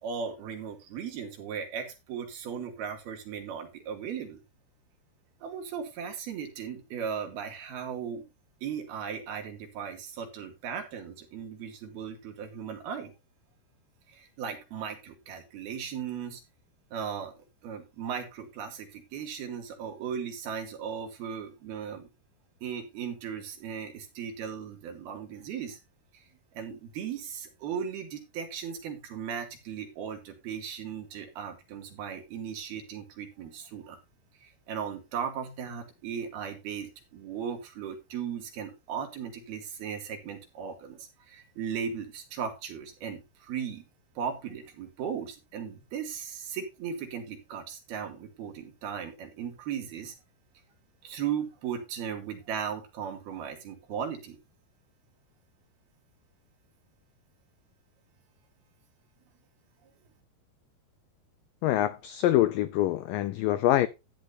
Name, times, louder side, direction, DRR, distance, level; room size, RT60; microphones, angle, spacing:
voice 1, 0.0-4.4 5.4-8.2 8.6-13.1 14.1-16.4 16.9-17.3 17.6-22.1 22.6-25.8 26.1-26.2 26.5-34.0 34.4-43.8 44.2-50.2 51.0-54.4, right 7 dB, 65° right, 4.4 m, -37 dB
voice 2, 61.6-63.9, left 14 dB, 85° left, 1.9 m, -25 dB
13.5 x 11.0 x 2.7 m
omnidirectional pair, 4.8 m